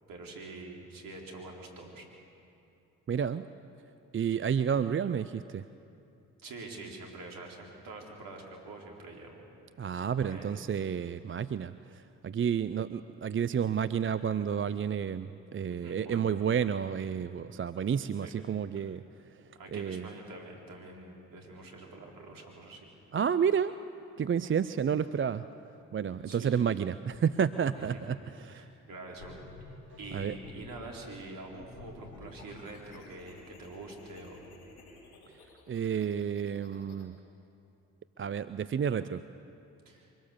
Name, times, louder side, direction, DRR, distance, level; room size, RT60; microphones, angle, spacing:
voice 1, 0.1-2.1 6.4-9.4 10.2-10.5 15.7-16.3 18.2-18.3 18.8-19.0 19.5-22.9 26.3-26.6 27.8-28.0 28.5-34.5 39.9-40.1, right 2 dB, 60° right, 0 dB, 4.2 m, -46 dB
voice 2, 3.1-3.5 4.1-5.6 9.8-19.0 19.7-20.1 23.1-23.7 24.2-25.5 25.9-28.6 30.1-30.3 35.7-37.2 38.2-39.2, right 7 dB, 30° right, 14 dB, 0.6 m, -30 dB
sound 1, 29.2-30.8 31.5-37.0, left 3 dB, 80° left, 4.2 m, -52 dB
24.5 x 17.5 x 7.1 m, 2.7 s
hypercardioid pair, 45°, 38 cm